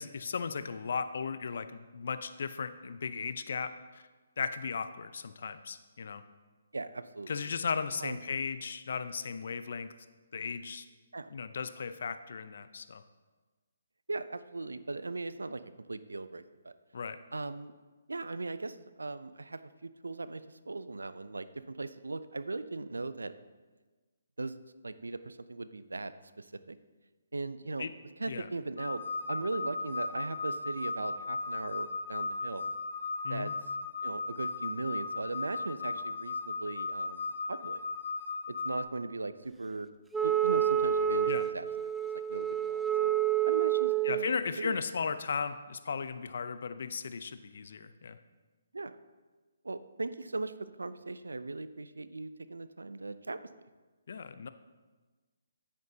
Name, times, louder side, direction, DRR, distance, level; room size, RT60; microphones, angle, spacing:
voice 1, 0.0-4.0 4.4-6.2 7.3-9.9 10.3-10.9 11.3-13.0 16.9-17.2 27.8-27.9 28.3-28.5 33.2-33.5 41.2-41.4 44.0-48.2 54.1-54.5, left 5 dB, 65° left, 11 dB, 0.6 m, -36 dB
voice 2, 6.7-7.3 8.0-8.2 11.1-11.3 14.1-15.6 15.9-16.7 17.3-17.7 18.1-23.3 24.4-24.5 24.8-26.8 27.3-27.9 28.2-32.7 33.3-33.5 34.0-37.8 38.5-39.9 40.2-43.1 43.4-44.8 48.7-48.9 49.6-53.4, right 3 dB, 90° right, 14 dB, 0.5 m, -39 dB
sound 1, 28.8-38.8, left 3 dB, 80° left, 1.2 m, -36 dB
Wind instrument woodwind instrument, 40.1-44.3, right 10 dB, 5° right, 0.3 m, -28 dB
9.6 x 8.9 x 2.8 m, 1.3 s
hypercardioid pair, 145°, 0 cm